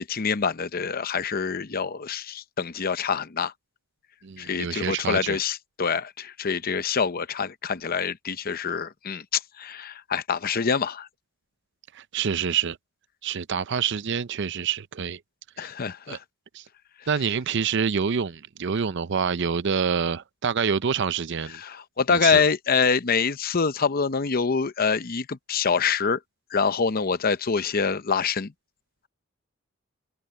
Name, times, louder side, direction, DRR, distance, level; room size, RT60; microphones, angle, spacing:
voice 1, 0.0-3.5 4.4-11.1 15.6-16.2 21.5-26.2 26.5-28.5, left 5 dB, 45° left, 0.7 m, -25 dB
voice 2, 4.2-5.4 11.9-12.8 13.2-15.2 15.6-15.7 16.1-16.2 16.5-16.6 17.1-21.6 22.1-22.5, right 6 dB, 60° right, 0.6 m, -27 dB
head